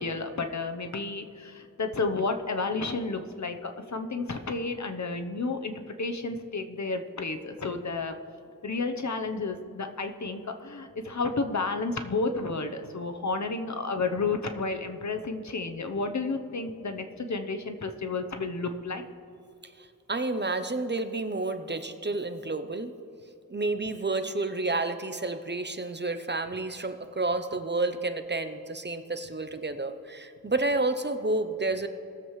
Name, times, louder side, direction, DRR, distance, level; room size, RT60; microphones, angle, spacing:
voice 1, 0.0-8.1 8.6-19.0, left 3 dB, 55° left, 7 dB, 0.9 m, -31 dB
voice 2, 19.8-23.0 23.5-31.9, right 2 dB, 30° right, 9 dB, 0.7 m, -30 dB
19.5 x 7.4 x 3.2 m, 2.6 s
wide cardioid pair, 55°, 34 cm